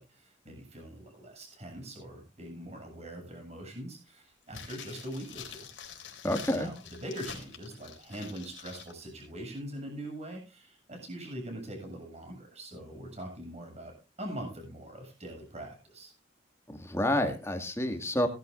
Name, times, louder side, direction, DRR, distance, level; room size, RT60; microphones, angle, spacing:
voice 1, 0.0-5.7 6.5-16.1, right 1 dB, 35° right, 3 dB, 7.5 m, -42 dB
sound 1, 4.5-8.9 9.2-9.3, left 7 dB, 85° left, 3.6 m, -46 dB
voice 2, 6.2-6.7 16.8-18.3, left 1 dB, 15° left, 6 dB, 2.1 m, -28 dB
18.0 x 13.0 x 2.6 m, 0.31 s
head